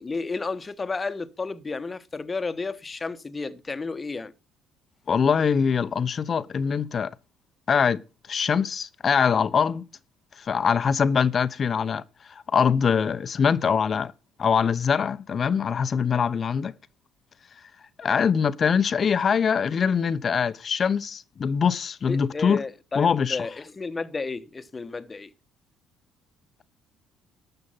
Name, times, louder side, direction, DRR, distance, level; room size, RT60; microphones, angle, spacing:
voice 1, 0.0-4.3 22.1-25.3, left 4 dB, 30° left, 1.1 m, -32 dB
voice 2, 5.1-7.1 7.7-8.0 8.3-9.9 10.4-12.0 12.3-14.1 14.4-16.7 18.0-22.6 23.0-23.5, left 6 dB, 45° left, 0.9 m, -23 dB
12.5 x 6.8 x 5.7 m
hypercardioid pair, 65°, 0 cm